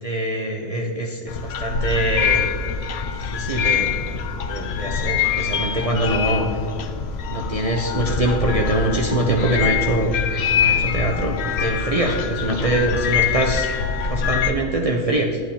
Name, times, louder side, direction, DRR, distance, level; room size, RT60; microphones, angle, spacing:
voice 1, 0.0-2.5 3.1-3.9 4.5-6.6 7.3-10.1 10.5-13.7 14.1-15.4, right 1 dB, 35° right, -1 dB, 0.6 m, -23 dB
sound 1, 1.3-14.5, left 6 dB, 65° left, 0.7 m, -24 dB
10.5 x 10.0 x 2.8 m, 2.3 s
omnidirectional pair, 1.3 m